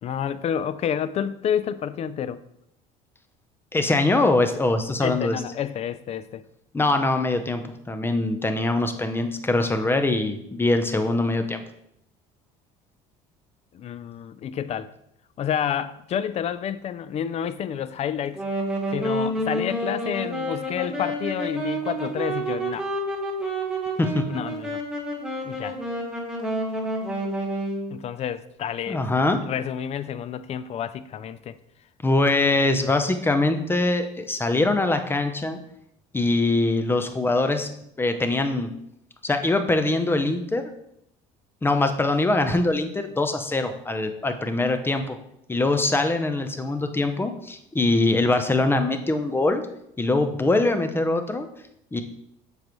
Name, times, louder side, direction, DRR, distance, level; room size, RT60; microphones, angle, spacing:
voice 1, 0.0-2.4 5.0-6.4 13.7-14.9 15.4-18.4 18.9-22.9 24.3-24.8 25.4-25.8 27.9-29.0 29.4-31.6, left 9 dB, 40° left, 0.4 m, -29 dB
voice 2, 3.7-5.4 6.7-11.6 24.0-24.2 28.9-29.4 32.0-35.6 36.1-37.7 38.0-38.7 39.2-40.7 41.6-45.2 45.5-49.6 50.0-51.5 51.9-52.0, left 2 dB, 15° left, 0.7 m, -23 dB
Wind instrument woodwind instrument, 18.2-27.9, right 1 dB, 5° right, 1.4 m, -29 dB
7.3 x 4.9 x 3.1 m
supercardioid pair, 100°, 17 cm